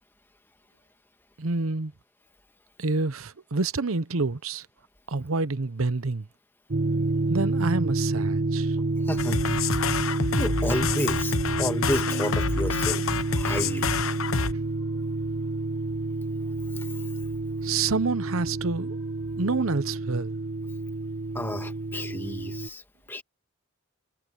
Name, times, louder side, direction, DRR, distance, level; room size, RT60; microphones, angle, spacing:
voice 1, 1.4-1.9 2.8-4.7 5.1-6.3 7.3-8.8 17.6-19.0 19.4-20.4, right 3 dB, 85° right, 0.9 m, -27 dB
sound 1, 6.7-22.7, right 3 dB, 60° right, 1.1 m, -29 dB
voice 2, 9.1-9.4 10.4-13.0 13.3-13.9 16.8-16.9 21.3-22.8 23.1-23.2, left 1 dB, 10° left, 1.6 m, -31 dB
sound 2, 9.2-14.5, left 5 dB, 80° left, 1.0 m, -28 dB
sound 3, 9.4-19.6, equal, 10° right, 7.7 m, -57 dB
head